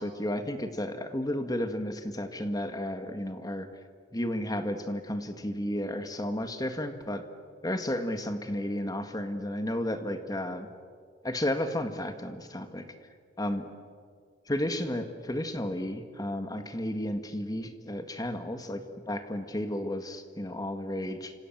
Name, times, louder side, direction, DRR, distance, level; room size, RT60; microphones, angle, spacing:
voice 1, 0.0-3.7 4.1-7.2 7.6-10.7 11.2-12.9 13.4-13.6 14.5-21.3, left 1 dB, 20° left, 8 dB, 1.8 m, -32 dB
29.5 x 26.0 x 7.4 m, 2.1 s
head